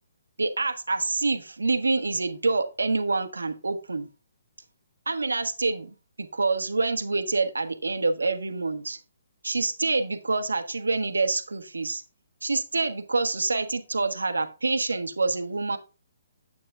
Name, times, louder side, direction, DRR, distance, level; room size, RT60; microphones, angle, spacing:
voice 1, 0.4-4.1 5.1-9.0 9.4-12.0 12.4-15.8, right 3 dB, 80° right, 9 dB, 1.2 m, -27 dB
9.9 x 8.4 x 2.4 m, 0.32 s
figure-of-eight pair, 135°, 0 cm